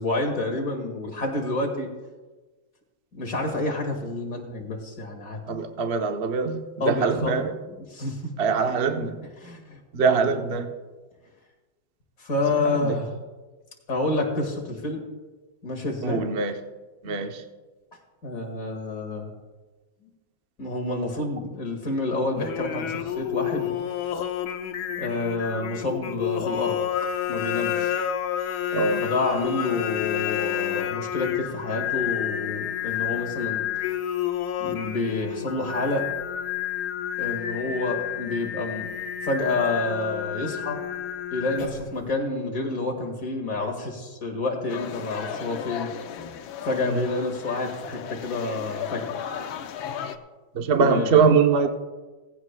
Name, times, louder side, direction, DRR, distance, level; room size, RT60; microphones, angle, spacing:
voice 1, 0.0-1.9 3.1-5.4 6.8-8.3 9.4-10.7 12.2-13.1 13.9-15.0 15.6-16.3 18.2-19.3 20.0-20.1 20.6-23.7 25.0-26.8 27.3-28.0 29.0-33.6 34.6-36.0 37.2-38.9 39.2-40.8 41.3-45.9 46.6-49.1 50.7-51.3, left 2 dB, 45° left, 1 dB, 2.3 m, -29 dB
voice 2, 5.5-7.5 8.4-9.2 9.9-10.7 12.5-13.0 16.0-16.5 17.0-17.4 28.7-29.0 46.9-47.0 50.5-51.7, right 5 dB, 60° right, 5 dB, 0.6 m, -23 dB
Singing, 22.4-42.0, left 10 dB, 65° left, 1.1 m, -30 dB
sound 1, 44.7-50.2, left 8 dB, 80° left, 1.5 m, -36 dB
17.5 x 16.0 x 2.2 m, 1.3 s
omnidirectional pair, 2.2 m